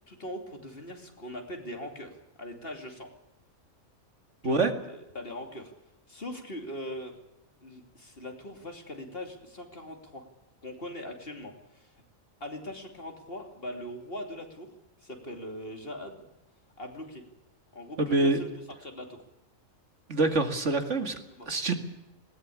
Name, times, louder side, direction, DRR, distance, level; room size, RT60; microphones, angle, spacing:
voice 1, 0.1-3.1 4.4-4.6 4.9-5.7 6.1-7.2 7.6-10.3 10.6-11.9 12.4-14.7 15.0-16.2 16.8-17.2 17.7-18.5 18.8-19.2 21.3-21.5, left 1 dB, 45° left, 4 dB, 3.1 m, -41 dB
voice 2, 18.0-18.4 20.1-21.2 21.5-21.7, right 3 dB, 60° right, 6 dB, 2.4 m, -25 dB
20.0 x 18.5 x 8.5 m, 0.90 s
omnidirectional pair, 1.4 m